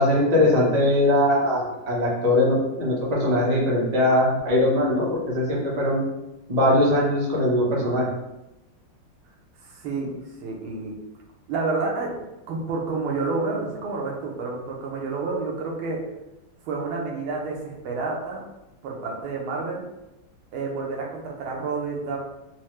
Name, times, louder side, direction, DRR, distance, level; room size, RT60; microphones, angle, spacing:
voice 1, 0.0-6.0 6.5-8.1, left 1 dB, 55° right, -4 dB, 0.4 m, -21 dB
voice 2, 9.7-10.1 10.4-10.9 11.5-16.0 16.6-18.4 18.8-19.8 20.5-22.2, right 3 dB, 85° right, -1 dB, 1.6 m, -29 dB
4.4 x 2.1 x 3.1 m, 0.95 s
omnidirectional pair, 2.2 m